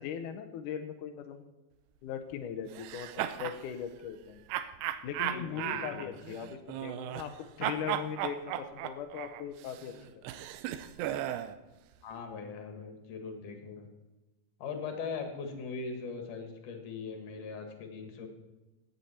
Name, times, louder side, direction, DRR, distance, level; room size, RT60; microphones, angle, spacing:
voice 1, 0.0-1.5 2.0-4.4 5.0-10.4, left 8 dB, 85° left, 6 dB, 1.8 m, -39 dB
sound 1, 2.7-3.6 4.5-7.4 7.6-11.6, right 12 dB, 85° right, 2.7 m, -36 dB
voice 2, 5.3-6.1 12.0-13.8 14.6-18.3, left 5 dB, 60° left, 5 dB, 2.7 m, -40 dB
17.0 x 8.0 x 4.3 m, 1.1 s
omnidirectional pair, 4.8 m